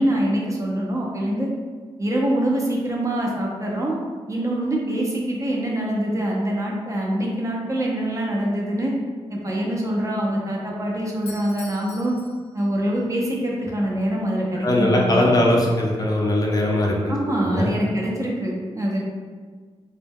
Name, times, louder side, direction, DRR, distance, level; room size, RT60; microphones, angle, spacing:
voice 1, 0.0-1.5 2.0-4.0 4.3-8.9 9.3-12.1 12.5-15.5 17.1-19.0, right 1 dB, 30° right, -2 dB, 0.5 m, -24 dB
Doorbell, 11.2-13.1, left 4 dB, 80° left, 0.5 m, -44 dB
voice 2, 14.6-17.7, left 1 dB, 35° left, -2 dB, 0.5 m, -20 dB
2.2 x 2.1 x 3.4 m, 1.5 s
cardioid pair, 90°, 11 cm